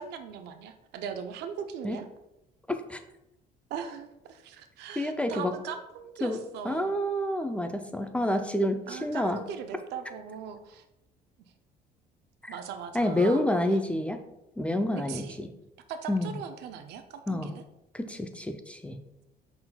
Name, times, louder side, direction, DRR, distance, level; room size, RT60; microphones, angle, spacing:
voice 1, 0.0-2.0 3.7-7.0 8.9-10.8 12.5-13.8 15.1-15.4 15.9-17.6, right 7 dB, 80° right, 8 dB, 0.5 m, -40 dB
voice 2, 2.7-3.0 5.0-5.5 6.2-9.4 12.4-12.5 12.9-14.2 14.6-15.5 16.1-16.4 17.3-17.5 17.9-19.0, left 1 dB, 5° left, 7 dB, 0.4 m, -28 dB
5.6 x 4.0 x 2.2 m, 0.90 s
cardioid pair, 110°, 17 cm